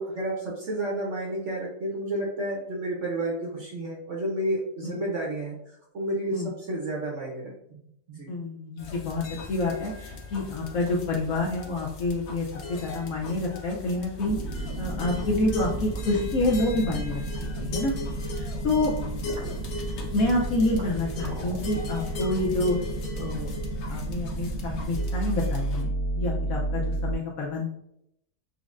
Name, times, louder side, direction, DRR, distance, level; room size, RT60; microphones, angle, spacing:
voice 1, 0.0-7.4 7.7-8.3, right 1 dB, 60° right, -3 dB, 0.9 m, -31 dB
voice 2, 8.3-14.4 14.8-17.9 18.4-18.9 20.1-22.8 23.2-23.5 23.9-25.9 26.2-27.7, left 2 dB, 65° left, -2 dB, 0.9 m, -28 dB
sound 1, 8.8-25.8, left 2 dB, 85° left, 0.6 m, -39 dB
sound 2, 14.3-27.2, right 2 dB, 85° right, 1.7 m, -32 dB
6.1 x 2.1 x 2.4 m, 0.76 s
omnidirectional pair, 1.9 m